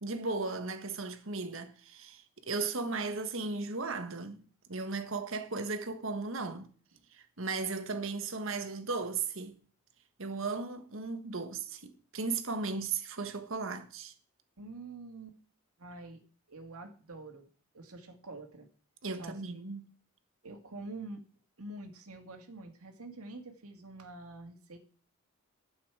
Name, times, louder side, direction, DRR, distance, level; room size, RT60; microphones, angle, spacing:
voice 1, 0.0-4.4 4.7-6.7 7.1-9.6 10.2-14.1 19.0-19.9, right 4 dB, 65° right, 1.3 m, -36 dB
voice 2, 14.6-15.4 15.8-16.2 16.5-17.5 17.7-18.7 19.2-19.4 20.4-21.2 21.6-24.8, right 2 dB, 85° right, 1.9 m, -46 dB
11.5 x 8.5 x 4.8 m
head